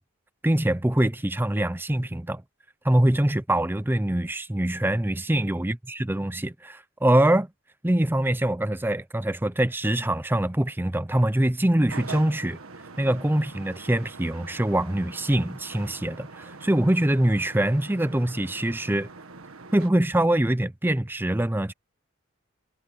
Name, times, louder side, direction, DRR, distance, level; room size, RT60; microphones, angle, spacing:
voice 1, 0.4-2.4 2.8-5.7 6.1-7.5 7.8-12.6 13.0-19.1 19.7-21.7, right 1 dB, 10° right, 0.6 m, -24 dB
sound 1, 11.9-19.9, right 3 dB, 85° right, 1.6 m, -43 dB
head